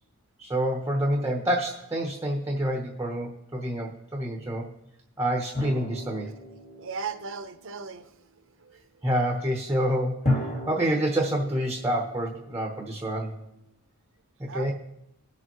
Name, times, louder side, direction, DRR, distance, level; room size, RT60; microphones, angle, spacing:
voice 1, 0.4-4.7 5.2-6.3 9.0-13.4 14.4-14.7, right 1 dB, 10° right, 1 dB, 0.9 m, -28 dB
sound 1, 5.5-7.9 10.3-13.2, left 1 dB, 30° left, 1.8 m, -33 dB
voice 2, 6.8-8.1 8.6-8.8 10.6-10.7 14.5-14.7, right 5 dB, 60° right, 8 dB, 0.8 m, -37 dB
19.5 x 6.8 x 3.1 m, 0.85 s
head